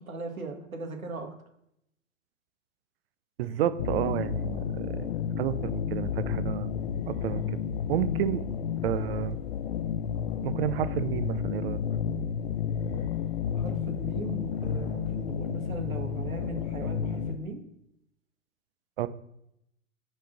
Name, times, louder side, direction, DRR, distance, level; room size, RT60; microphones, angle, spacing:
voice 1, 0.0-1.3 13.5-17.6, right 3 dB, 85° right, 3 dB, 1.9 m, -38 dB
voice 2, 3.4-5.1 5.4-6.7 7.1-7.6 7.9-8.5 8.8-9.4 10.4-11.8 19.0-19.1, right 11 dB, 45° right, 14 dB, 0.6 m, -30 dB
sound 1, 3.8-17.3, left 7 dB, 50° left, 0.7 m, -31 dB
5.7 x 5.2 x 6.4 m, 0.78 s
figure-of-eight pair, 115°, 41 cm